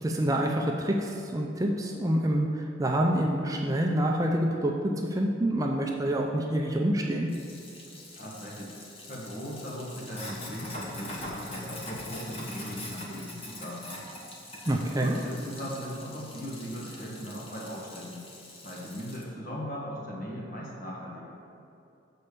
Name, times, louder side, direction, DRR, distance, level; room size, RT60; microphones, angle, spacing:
voice 1, 0.0-7.3 14.7-15.2, right 1 dB, 20° right, 0 dB, 0.4 m, -27 dB
Sink (filling or washing), 7.3-19.2, left 1 dB, 30° left, 1.0 m, -42 dB
voice 2, 8.1-13.9 14.9-18.2 18.6-21.4, equal, 50° left, -4 dB, 1.6 m, -39 dB
6.8 x 4.3 x 6.7 m, 2.8 s
head